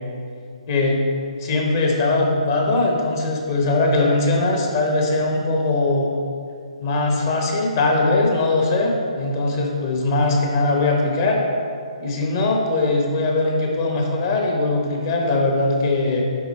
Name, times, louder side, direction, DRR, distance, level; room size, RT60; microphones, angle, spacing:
voice 1, 0.7-1.0 1.4-6.1 6.8-11.4 12.0-16.2, left 2 dB, 30° left, 0 dB, 1.0 m, -20 dB
9.8 x 3.8 x 4.2 m, 2.3 s
hypercardioid pair, 165°, 4 cm